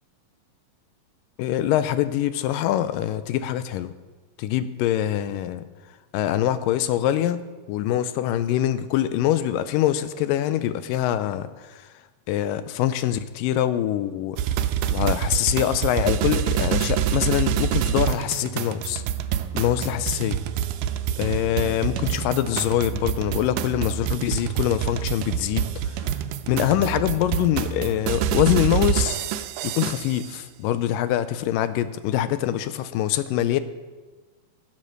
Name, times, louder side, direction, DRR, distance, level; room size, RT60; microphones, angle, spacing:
voice 1, 1.4-3.9 4.4-5.6 6.1-7.4 7.7-11.8 12.3-14.4 14.9-19.0 19.5-20.4 21.2-25.7 26.5-29.2 29.6-33.6, left 12 dB, 85° left, 13 dB, 2.2 m, -24 dB
sound 1, 14.4-30.3, right 9 dB, 80° right, 2.1 m, -26 dB
14.5 x 7.5 x 6.5 m, 1.3 s
omnidirectional pair, 4.0 m